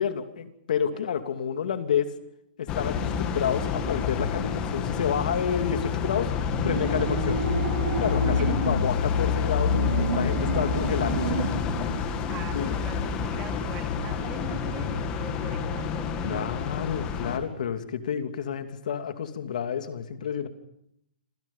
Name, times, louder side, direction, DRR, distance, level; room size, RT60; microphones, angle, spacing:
voice 1, 0.0-2.1 2.6-6.3 6.6-7.4 8.0-11.4 12.5-12.7 16.2-20.5, left 8 dB, 55° left, 8 dB, 2.8 m, -29 dB
sound 1, 2.7-17.4, left 6 dB, 15° left, 2.2 m, -28 dB
sound 2, 6.5-8.9 9.4-11.7, right 3 dB, 70° right, 6.8 m, -30 dB
voice 2, 12.3-16.6, right 8 dB, 15° right, 6 dB, 2.6 m, -42 dB
28.5 x 27.0 x 5.6 m, 0.74 s
hypercardioid pair, 180°, 5 cm